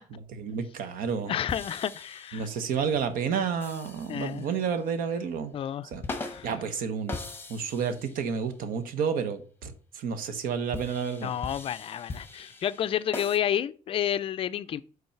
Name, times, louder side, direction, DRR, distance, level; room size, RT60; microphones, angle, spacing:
voice 1, 0.1-1.4 2.3-5.5 5.8-6.0 6.4-11.3, right 6 dB, 85° right, 0.9 m, -31 dB
voice 2, 1.3-2.5 4.1-4.4 5.5-5.9 6.2-6.5 11.2-14.8, left 10 dB, 40° left, 0.3 m, -30 dB
sound 1, 1.5-2.9 3.6-4.7 5.9-6.6 7.1-8.5 10.7-13.4, left 3 dB, 15° left, 0.9 m, -40 dB
5.5 x 3.9 x 5.7 m
cardioid pair, 145°, 14 cm